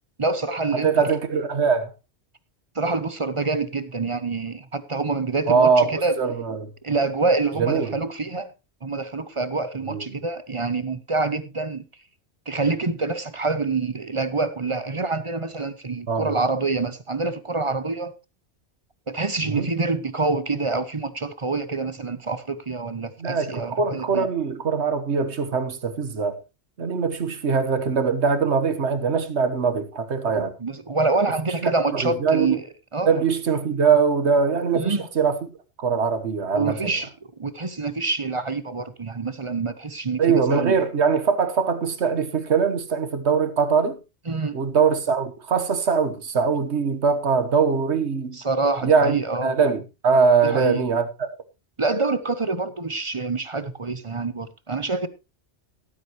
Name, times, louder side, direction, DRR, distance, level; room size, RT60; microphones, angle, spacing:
voice 1, 0.2-1.1 2.7-6.2 6.8-8.5 8.8-11.8 12.5-18.1 19.1-24.3 30.6-32.6 32.9-33.2 34.7-35.1 36.5-40.8 44.3-44.5 48.3-49.5 50.4-50.8 51.8-55.1, right 3 dB, 30° right, 0.8 m, -26 dB
voice 2, 0.7-1.9 5.5-6.7 7.6-8.0 9.9-10.2 16.1-16.4 19.5-19.7 23.2-26.4 26.8-30.5 31.6-32.6 33.1-35.4 35.8-36.9 40.2-44.0 44.5-48.4 48.8-51.1, right 5 dB, 75° right, 1.6 m, -22 dB
13.0 x 12.5 x 3.0 m
omnidirectional pair, 1.2 m